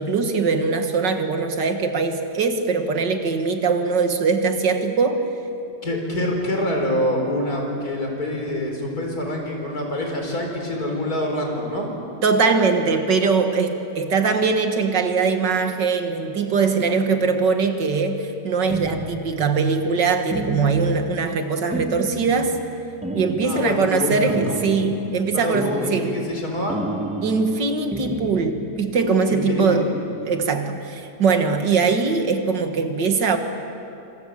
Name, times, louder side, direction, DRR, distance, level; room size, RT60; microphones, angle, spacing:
voice 1, 0.0-5.2 12.2-22.6 23.1-26.1 27.2-29.9 30.3-33.4, right 4 dB, 85° right, 6 dB, 2.4 m, -21 dB
voice 2, 5.8-11.9 23.4-24.6 25.3-26.8 29.3-30.0, left 1 dB, 60° left, 1 dB, 5.0 m, -26 dB
sound 1, 18.7-19.6 20.3-21.2 21.7-22.7 23.0-23.8 24.3-25.1 25.5-26.4 26.7-27.6 27.9-28.9, right 1 dB, 5° right, 2.1 m, -30 dB
26.5 x 26.0 x 7.6 m, 2.8 s
omnidirectional pair, 1.9 m